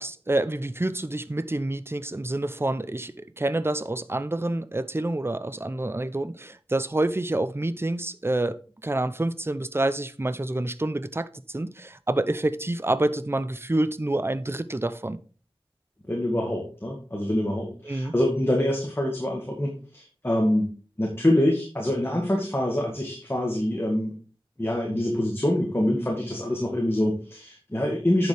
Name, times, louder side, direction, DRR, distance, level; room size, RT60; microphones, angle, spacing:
voice 1, 0.0-11.3 11.5-15.2 17.8-18.1, right 2 dB, 25° right, 0.6 m, -27 dB
voice 2, 16.1-20.7 21.0-24.1 24.6-28.3, left 1 dB, 25° left, 2.0 m, -25 dB
10.0 x 6.9 x 3.4 m
wide cardioid pair, 55°, 10 cm